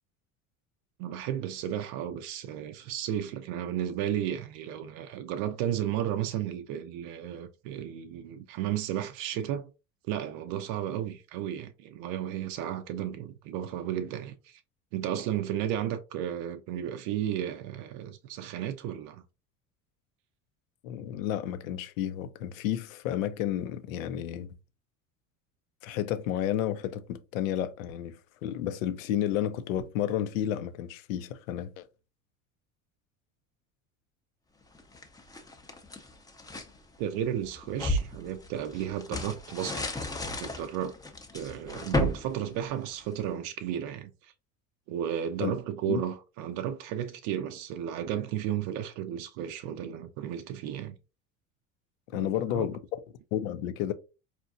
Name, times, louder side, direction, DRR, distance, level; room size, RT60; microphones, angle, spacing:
voice 1, 1.0-9.7 10.1-14.6 14.9-19.2 37.0-39.8 40.4-40.9 41.3-44.3 44.9-50.9 52.1-52.7, right 10 dB, 55° right, 0.5 m, -33 dB
voice 2, 20.8-24.5 25.8-28.2 28.4-31.8 45.4-45.5 45.9-46.0 52.1-52.8 53.3-53.9, left 11 dB, 75° left, 0.6 m, -31 dB
sound 1, 34.7-36.7 37.2-43.3, left 1 dB, 10° left, 0.6 m, -34 dB
4.4 x 2.5 x 2.4 m
hypercardioid pair, 70°, 41 cm